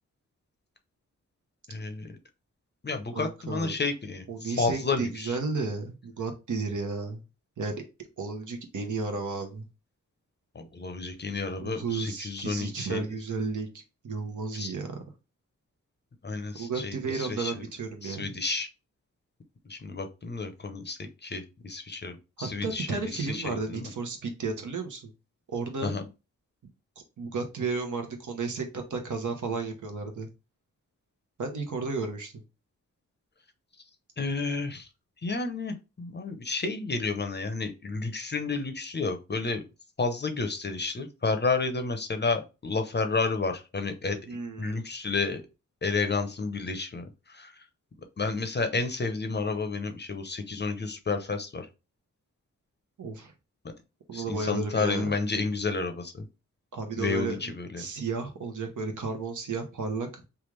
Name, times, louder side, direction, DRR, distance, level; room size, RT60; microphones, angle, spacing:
voice 1, 1.7-2.2 2.8-5.4 10.5-13.0 14.5-14.7 16.2-17.6 18.0-18.7 19.7-23.9 25.8-26.0 34.2-34.9 35.2-39.6 40.0-44.2 44.6-45.4 45.8-47.6 48.2-51.7 54.1-56.3 57.0-57.9, left 4 dB, 35° left, 7 dB, 0.7 m, -31 dB
voice 2, 3.1-3.7 4.3-7.2 7.6-7.8 8.2-9.6 11.6-13.7 14.0-15.0 16.6-18.3 22.4-25.1 25.5-25.9 27.2-30.3 31.4-32.3 44.3-44.8 53.0-53.3 54.1-55.1 56.7-57.5 57.8-60.2, right 4 dB, 70° right, 5 dB, 0.9 m, -33 dB
3.3 x 2.4 x 3.1 m, 0.29 s
cardioid pair, 60°, 32 cm